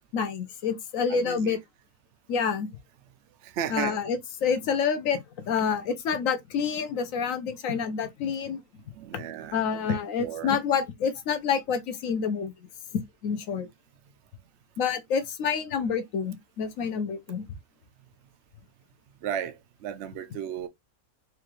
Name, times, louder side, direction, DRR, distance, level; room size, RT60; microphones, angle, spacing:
voice 1, 0.1-1.6 2.3-2.7 3.7-8.6 9.5-12.5 13.2-13.7 14.8-17.4, left 6 dB, 65° left, 1.1 m, -28 dB
voice 2, 1.1-1.6 3.4-4.0 8.9-10.5 19.2-20.7, right 9 dB, 65° right, 0.7 m, -35 dB
4.6 x 2.4 x 3.0 m
omnidirectional pair, 1.6 m